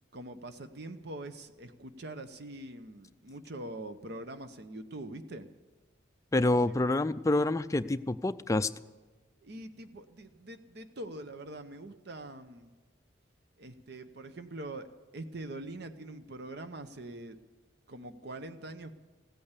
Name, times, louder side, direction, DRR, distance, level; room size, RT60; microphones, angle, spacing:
voice 1, 0.1-5.5 6.4-6.7 9.4-12.7 13.6-14.9 15.1-17.4 17.9-18.9, right 1 dB, 60° right, 10 dB, 0.8 m, -43 dB
voice 2, 6.3-8.7, left 2 dB, 15° left, 12 dB, 0.4 m, -27 dB
15.5 x 8.8 x 8.2 m, 1.3 s
head